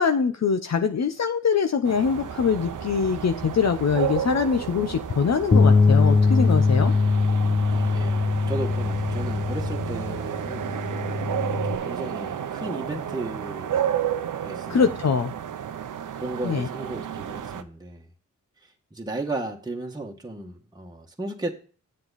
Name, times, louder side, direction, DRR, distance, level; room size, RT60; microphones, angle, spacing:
voice 1, 0.0-6.9 14.7-15.3 16.4-16.7, left 6 dB, 55° left, 0.8 m, -23 dB
sound 1, 1.8-17.6, right 9 dB, 75° right, 0.8 m, -32 dB
sound 2, 2.0-10.6, right 3 dB, 35° right, 1.5 m, -42 dB
Bass guitar, 5.5-11.8, left 4 dB, 20° left, 0.4 m, -21 dB
voice 2, 7.7-10.7 11.4-14.0 14.4-14.9 16.2-18.0 18.9-21.5, right 2 dB, 10° right, 1.4 m, -35 dB
7.7 x 7.6 x 4.1 m
cardioid pair, 60°, 32 cm